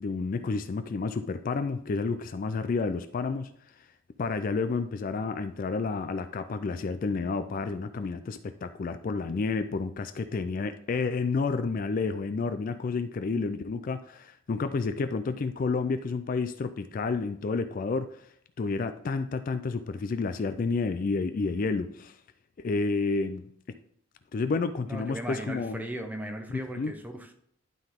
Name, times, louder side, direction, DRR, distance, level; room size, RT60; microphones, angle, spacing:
voice 1, 0.0-3.5 4.2-18.2 18.6-22.2 22.6-23.5 24.3-25.8 26.5-26.9, left 4 dB, 40° left, 0.3 m, -30 dB
voice 2, 24.9-27.3, right 1 dB, 10° right, 0.7 m, -37 dB
11.5 x 3.9 x 3.5 m
head